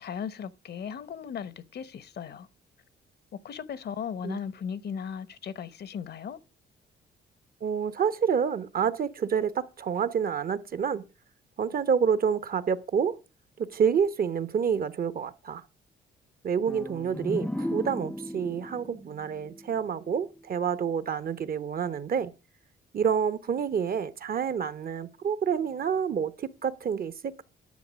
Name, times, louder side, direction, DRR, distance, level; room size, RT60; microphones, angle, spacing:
voice 1, 0.0-2.5 3.4-6.4, left 7 dB, 55° left, 0.8 m, -37 dB
voice 2, 7.6-11.0 11.6-13.2 13.6-15.6 16.4-22.3 22.9-27.4, right 7 dB, 50° right, 0.9 m, -28 dB
sound 1, 16.7-20.3, left 1 dB, 5° left, 0.4 m, -36 dB
10.5 x 6.6 x 6.3 m
cardioid pair, 90°, 20 cm